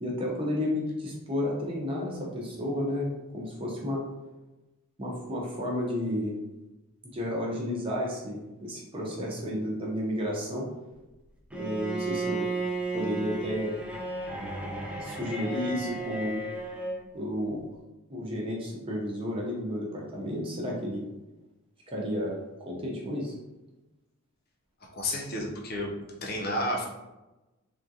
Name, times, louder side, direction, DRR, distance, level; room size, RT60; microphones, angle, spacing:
voice 1, 0.0-4.0 5.0-6.3 7.0-10.7 11.5-12.5 12.9-13.8 15.0-16.4 17.1-17.6 18.1-21.0 21.9-22.4 22.7-23.3, left 1 dB, 25° right, -3 dB, 0.7 m, -32 dB
Bowed string instrument, 11.5-17.0, right 2 dB, 5° right, 0.3 m, -34 dB
voice 2, 24.9-25.9 26.2-26.9, left 1 dB, 45° left, -1 dB, 0.6 m, -31 dB
3.5 x 2.4 x 2.7 m, 1.0 s
head